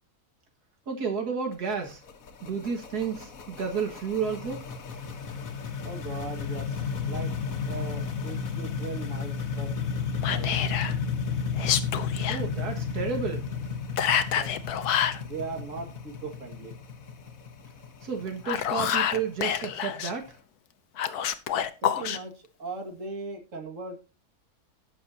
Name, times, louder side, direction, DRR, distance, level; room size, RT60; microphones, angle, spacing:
voice 1, 0.9-2.0 2.4-4.6 12.3-13.6 18.0-20.4, right 6 dB, 90° right, 2.3 m, -31 dB
sound 1, 1.5-20.3, left 5 dB, 65° left, 1.7 m, -33 dB
voice 2, 5.8-7.3 7.6-9.8 10.2-10.7 14.3-14.5 15.2-16.8 21.8-24.1, right 3 dB, 55° right, 2.5 m, -39 dB
Whispering, 10.2-10.9 11.5-12.4 14.0-15.2 18.3-20.1 21.0-22.2, left 9 dB, 90° left, 1.4 m, -27 dB
19.0 x 6.8 x 2.8 m
omnidirectional pair, 1.6 m